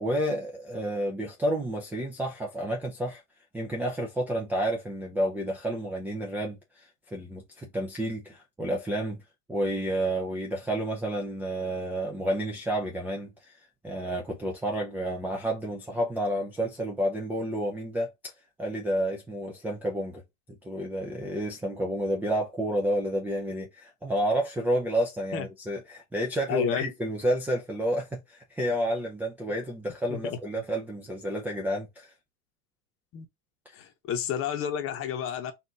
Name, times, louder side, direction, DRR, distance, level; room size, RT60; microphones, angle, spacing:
voice 1, 0.0-3.2 3.5-9.2 9.5-13.6 13.8-18.1 18.6-20.2 20.5-32.1, right 1 dB, 5° right, 0.4 m, -30 dB
voice 2, 26.5-26.9 30.1-30.4 33.1-33.3 33.7-35.5, left 8 dB, 30° left, 0.9 m, -30 dB
4.2 x 2.6 x 3.4 m
supercardioid pair, 130°, 42 cm